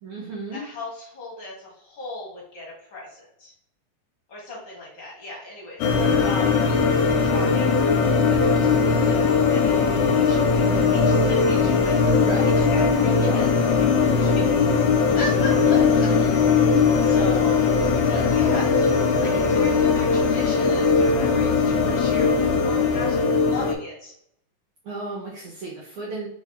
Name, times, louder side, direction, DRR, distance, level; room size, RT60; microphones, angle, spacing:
voice 1, 0.0-0.6 12.2-12.5 13.2-13.4 15.6-16.4 24.8-26.3, right 2 dB, 70° right, -4 dB, 1.4 m, -34 dB
voice 2, 0.5-3.5 4.3-6.9 7.2-12.3 12.6-16.1 16.7-17.6 18.1-24.1, left 2 dB, 40° left, -4 dB, 2.0 m, -37 dB
sound 1, 5.8-23.7, left 5 dB, 80° left, 2.1 m, -19 dB
4.8 x 2.7 x 3.3 m, 0.69 s
omnidirectional pair, 3.6 m